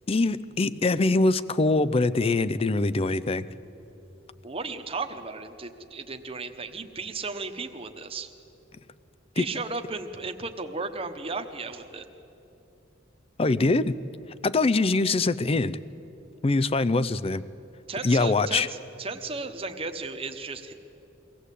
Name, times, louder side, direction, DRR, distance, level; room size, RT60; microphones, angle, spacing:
voice 1, 0.1-3.4 9.4-9.5 13.4-14.0 14.4-15.8 16.4-17.4 18.0-18.7, left 3 dB, 30° left, 16 dB, 0.5 m, -23 dB
voice 2, 4.4-8.3 9.3-12.0 17.9-20.7, right 3 dB, 30° right, 6 dB, 1.1 m, -35 dB
23.5 x 16.5 x 8.3 m, 2.8 s
head